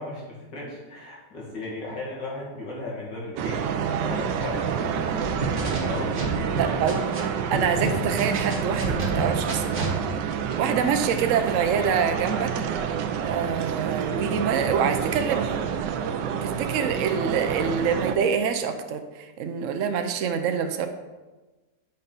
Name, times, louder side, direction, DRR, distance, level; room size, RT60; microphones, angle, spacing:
voice 1, 0.0-6.6, left 2 dB, 80° left, -5 dB, 2.7 m, -36 dB
sound 1, 3.4-18.2, right 7 dB, 90° right, 1.3 m, -28 dB
sound 2, 5.2-7.2 7.5-10.0, right 3 dB, 40° right, 1.3 m, -29 dB
voice 2, 6.6-7.0 7.5-9.9 10.3-13.0 13.2-15.6 16.4-20.9, right 7 dB, 70° right, 6 dB, 0.8 m, -26 dB
8.5 x 5.4 x 4.0 m, 1.2 s
omnidirectional pair, 1.9 m